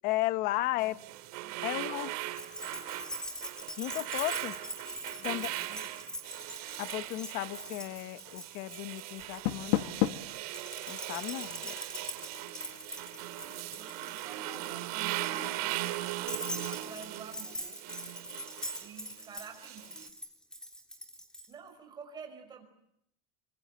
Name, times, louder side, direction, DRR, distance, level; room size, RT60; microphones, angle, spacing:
voice 1, 0.0-1.0 1.6-2.1 3.8-4.5 5.2-5.5 6.8-10.1 10.9-11.8, left 17 dB, 45° left, 1.0 m, -34 dB
voice 2, 0.6-1.0 1.4-2.2 5.2-6.1 13.5-15.8 16.7-17.8 18.8-20.1 21.5-22.6, right 6 dB, 20° right, 5.5 m, -50 dB
sound 1, 0.8-20.1, right 15 dB, 70° right, 2.8 m, -39 dB
Keys jangling, 2.3-9.8 10.5-21.5, equal, 5° left, 3.7 m, -43 dB
Door, 9.2-10.4, left 14 dB, 70° left, 1.6 m, -31 dB
26.0 x 25.5 x 7.8 m
supercardioid pair, 155°, 20 cm